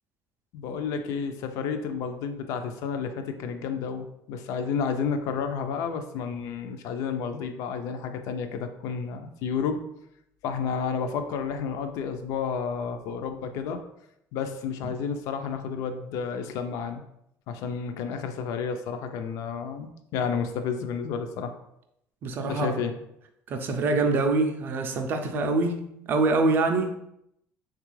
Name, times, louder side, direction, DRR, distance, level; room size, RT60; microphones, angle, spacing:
voice 1, 0.5-9.8 10.4-13.8 14.3-17.0 17.5-21.5 22.5-22.9, left 6 dB, 65° left, 7 dB, 0.4 m, -31 dB
voice 2, 22.2-22.8 23.5-26.9, right 3 dB, 35° right, 6 dB, 0.3 m, -25 dB
3.6 x 2.3 x 3.0 m, 0.78 s
cardioid pair, 175°, 6 cm